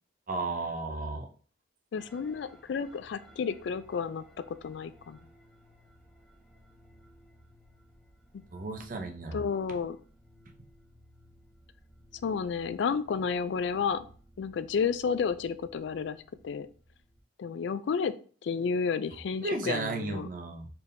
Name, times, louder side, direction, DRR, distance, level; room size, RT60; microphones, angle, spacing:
voice 1, 0.3-1.3 8.5-9.4 19.4-20.7, right 3 dB, 45° right, 4 dB, 0.6 m, -34 dB
voice 2, 1.9-5.2 8.3-8.4 9.3-10.0 12.2-14.1 14.4-16.2 16.4-16.7 17.4-18.1 18.4-20.3, left 6 dB, 70° left, 13 dB, 0.3 m, -31 dB
sound 1, 1.9-17.2, equal, ahead, 0.7 m, -58 dB
4.4 x 3.4 x 2.6 m, 0.42 s
head